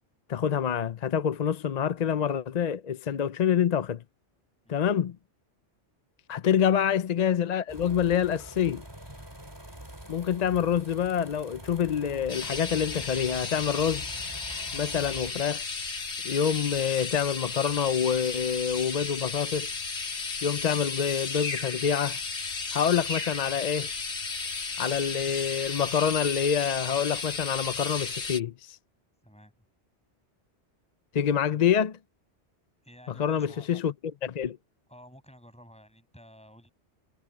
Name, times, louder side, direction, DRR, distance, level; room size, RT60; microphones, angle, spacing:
voice 1, 0.3-4.0 4.7-5.2 6.3-8.8 10.1-14.1 14.7-15.6 16.2-19.7 20.4-22.2 22.7-23.9 24.8-28.8 31.1-32.0 33.2-33.9 34.2-34.6, left 8 dB, 50° left, 0.6 m, -26 dB
sound 1, 7.7-15.3, right 1 dB, 20° right, 3.1 m, -45 dB
sound 2, 12.3-28.4, left 4 dB, 80° left, 2.1 m, -34 dB
voice 2, 29.2-29.5 32.8-33.8 34.9-36.7, equal, 5° left, 6.6 m, -52 dB
omnidirectional pair, 1.2 m